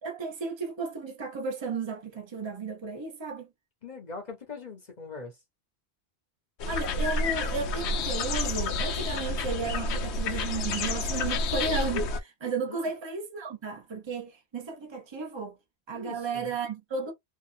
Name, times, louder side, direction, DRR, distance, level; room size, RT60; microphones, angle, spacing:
voice 1, 0.0-3.5 6.6-15.6 15.9-17.1, right 4 dB, 30° right, 0.9 m, -34 dB
voice 2, 3.8-5.4 12.7-12.9 15.9-16.6, left 4 dB, 45° left, 0.9 m, -42 dB
sound 1, 6.6-12.2, left 3 dB, 85° left, 0.9 m, -29 dB
2.9 x 2.4 x 2.5 m
omnidirectional pair, 1.1 m